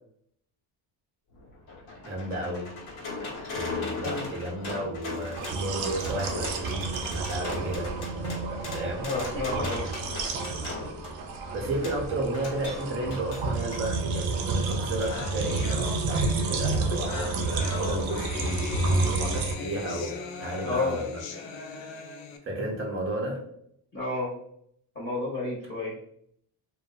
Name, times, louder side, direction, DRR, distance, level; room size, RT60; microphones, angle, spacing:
sound 1, 1.3-13.9 15.0-15.1 15.5-15.6, left 3 dB, 85° left, 1.0 m, -39 dB
voice 1, 2.0-2.7 3.5-7.9 8.7-9.1 10.3-10.9 11.5-21.2 22.4-23.4, right 1 dB, 30° right, 0 dB, 0.6 m, -33 dB
sound 2, 5.3-19.5, right 3 dB, 75° right, 0.6 m, -30 dB
voice 2, 9.0-9.8 20.6-21.0 23.9-24.3 24.9-25.9, left 3 dB, 20° left, -7 dB, 0.8 m, -30 dB
sound 3, 14.5-14.6 14.8-22.4, left 5 dB, 65° left, 0.5 m, -39 dB
2.5 x 2.3 x 2.3 m, 0.69 s
cardioid pair, 145°, 47 cm